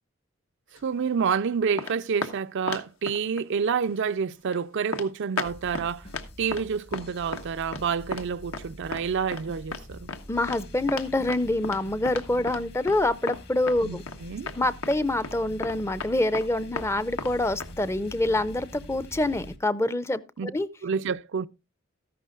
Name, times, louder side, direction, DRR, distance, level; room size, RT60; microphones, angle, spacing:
sound 1, 0.8-1.3 1.8-2.4 2.7-3.4 3.9-4.1 4.5-4.6 4.9-5.1 5.4-5.9 6.1-6.7 6.9-7.1 7.3-7.8 8.1-8.3 8.5-8.7 8.9-9.0 9.3-9.4 9.7-9.8 10.1-10.2 10.5-10.6 10.9-12.6 12.9-13.0 13.3-13.8 14.1-14.2 14.5-14.6 14.8-15.0 15.2-15.4 15.6-16.5 16.8-16.9 17.2-17.3 17.6-17.7, left 4 dB, 80° left, 1.4 m, -34 dB
voice 1, 0.8-6.1 6.4-10.1 13.8-14.5 20.4-20.5 20.8-21.5, right 6 dB, 60° right, 0.4 m, -28 dB
sound 2, 5.4-19.6, equal, 55° left, 1.7 m, -45 dB
voice 2, 10.3-14.0 14.6-20.2 20.5-20.7, left 2 dB, 15° left, 0.5 m, -26 dB
13.5 x 11.0 x 2.4 m
head